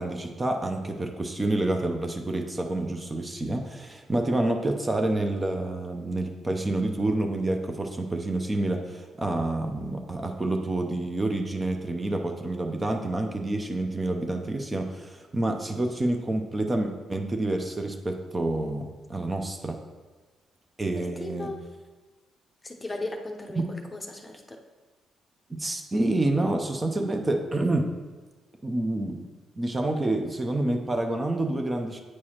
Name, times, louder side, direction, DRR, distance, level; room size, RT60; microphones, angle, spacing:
voice 1, 0.0-19.8 20.8-21.5 23.6-23.7 25.5-27.9 28.6-29.2 29.6-32.0, right 2 dB, 20° right, 4 dB, 0.6 m, -28 dB
voice 2, 21.0-21.6 22.6-24.6, left 2 dB, 20° left, 3 dB, 0.7 m, -37 dB
8.5 x 4.6 x 2.9 m, 1.3 s
cardioid pair, 90°, 0 cm